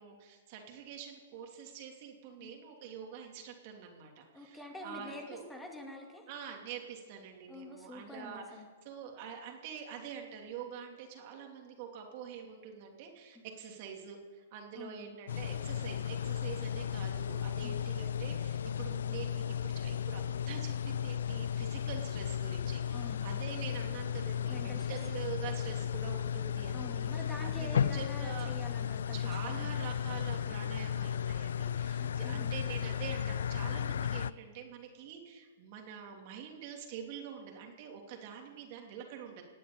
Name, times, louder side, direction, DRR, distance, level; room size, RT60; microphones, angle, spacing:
voice 1, 0.0-5.4 6.3-8.6 8.8-28.5 29.1-39.4, right 7 dB, 45° right, 2 dB, 3.0 m, -46 dB
voice 2, 4.3-6.3 7.5-8.7 14.7-15.1 17.6-17.8 22.9-23.3 24.5-25.0 26.7-29.9 32.0-32.5, left 1 dB, 10° left, 2 dB, 2.4 m, -47 dB
sound 1, 15.3-34.3, left 8 dB, 75° left, 0.4 m, -34 dB
18.0 x 8.4 x 8.7 m, 1.5 s
hypercardioid pair, 125°, 0 cm